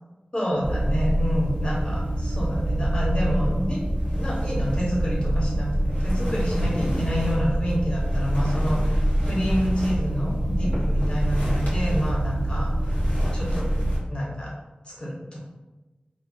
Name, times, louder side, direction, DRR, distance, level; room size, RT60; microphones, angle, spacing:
voice 1, 0.3-3.8 4.1-13.0 13.3-13.7 14.1-14.5 14.8-15.4, equal, 35° left, -5 dB, 1.0 m, -28 dB
sound 1, 0.6-14.0, right 1 dB, 85° left, 1.1 m, -25 dB
2.5 x 2.0 x 3.8 m, 1.1 s
wide cardioid pair, 45°, 3 cm